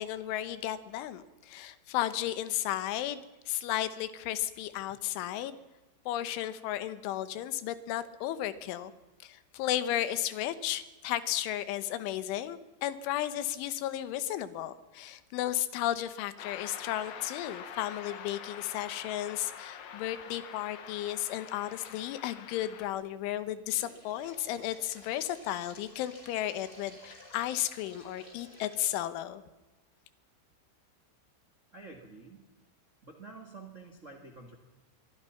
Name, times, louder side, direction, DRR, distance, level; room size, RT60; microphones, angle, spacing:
voice 1, 0.0-5.6 6.1-8.9 9.2-29.4, left 13 dB, 85° left, 13 dB, 3.5 m, -34 dB
sound 1, 16.4-22.9, left 8 dB, 60° left, 2.8 m, -45 dB
sound 2, 23.7-28.9, left 1 dB, 10° left, 4.8 m, -54 dB
voice 2, 31.7-32.4 33.0-34.5, right 3 dB, 60° right, 3 dB, 0.7 m, -48 dB
24.0 x 23.0 x 5.8 m, 1.1 s
omnidirectional pair, 5.5 m